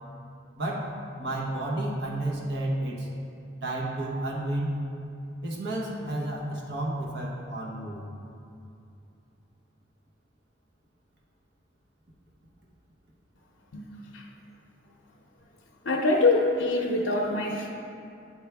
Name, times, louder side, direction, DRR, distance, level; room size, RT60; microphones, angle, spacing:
voice 1, 0.6-0.9 1.2-3.1 3.6-4.8 5.4-8.0, right 1 dB, 60° right, -3 dB, 1.0 m, -31 dB
voice 2, 15.8-17.7, left 2 dB, 85° left, -2 dB, 0.6 m, -24 dB
9.0 x 4.5 x 3.4 m, 2.6 s
head